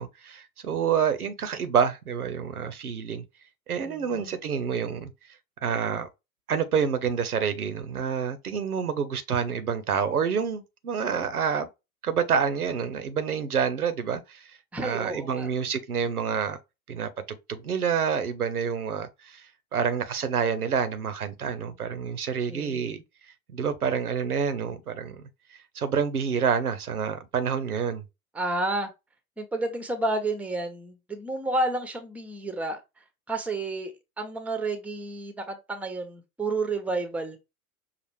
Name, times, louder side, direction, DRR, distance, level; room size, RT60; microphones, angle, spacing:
voice 1, 0.0-3.2 3.7-5.1 5.6-6.1 6.5-11.7 12.0-14.5 14.8-16.6 16.9-19.4 19.7-23.0 23.5-25.2 25.5-28.0, right 6 dB, 80° right, 0.8 m, -28 dB
voice 2, 3.8-4.4 14.7-15.5 22.5-23.0 28.3-28.9 29.4-32.8 33.3-37.4, right 2 dB, 5° right, 0.7 m, -31 dB
5.7 x 2.5 x 3.2 m
figure-of-eight pair, 85°, 44 cm